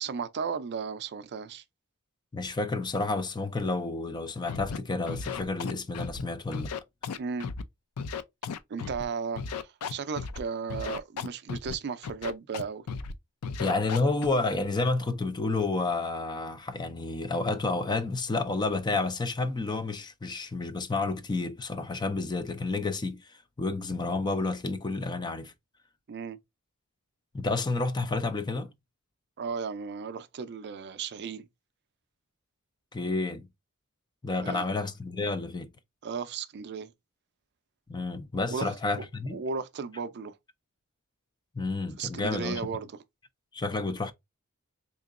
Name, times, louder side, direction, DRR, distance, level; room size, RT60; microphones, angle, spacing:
voice 1, 0.0-1.6 7.2-7.5 8.7-12.8 26.1-26.4 29.4-31.5 34.4-34.7 36.0-36.9 38.5-39.1 39.3-40.4 42.0-43.0, right 5 dB, 50° right, 0.4 m, -35 dB
voice 2, 2.3-6.7 13.6-25.5 27.3-28.7 32.9-33.5 34.2-35.7 37.9-39.4 41.5-42.6 43.5-44.1, left 3 dB, 20° left, 0.4 m, -30 dB
Scratching (performance technique), 4.5-4.8 5.1-6.2 6.5-7.6 8.0-9.0 9.4-10.4 10.7-11.7 12.0-12.6 12.9-13.1 13.4-14.3, left 5 dB, 90° left, 0.4 m, -35 dB
3.7 x 2.9 x 2.4 m
head